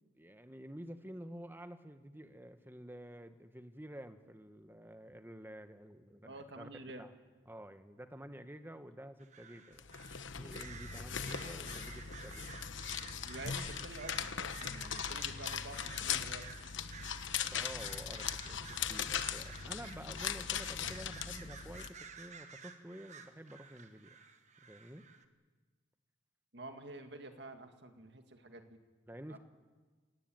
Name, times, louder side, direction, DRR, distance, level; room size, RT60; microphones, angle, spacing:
voice 1, 0.2-6.7 7.0-7.1 7.5-9.9 10.4-12.5 17.0-17.1 17.5-24.2 24.6-25.0 29.1-29.4, equal, 10° right, 9 dB, 1.2 m, -50 dB
voice 2, 6.2-7.1 13.2-16.5 26.5-28.8 29.3-29.4, right 2 dB, 60° right, 7 dB, 2.1 m, -49 dB
sound 1, 9.2-10.2 10.5-25.2, right 6 dB, 35° right, 1.4 m, -53 dB
sound 2, 9.8-21.9, left 8 dB, 75° left, 1.1 m, -39 dB
25.0 x 18.0 x 9.1 m, 1.4 s
head